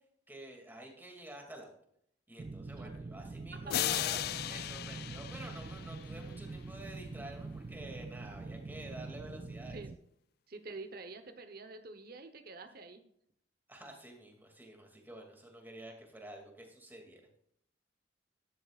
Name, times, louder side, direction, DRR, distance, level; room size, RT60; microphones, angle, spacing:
voice 1, 0.3-1.7 2.3-9.8 13.7-17.3, right 1 dB, 10° right, 1 dB, 2.5 m, -49 dB
sound 1, 2.4-10.0, right 3 dB, 25° right, 0.3 m, -44 dB
voice 2, 3.5-4.2 4.9-5.0 9.7-9.9 10.5-13.0, right 3 dB, 55° right, 8 dB, 1.0 m, -47 dB
sound 2, 3.7-6.4, left 13 dB, 60° left, 0.3 m, -36 dB
13.5 x 10.5 x 2.5 m, 0.70 s
head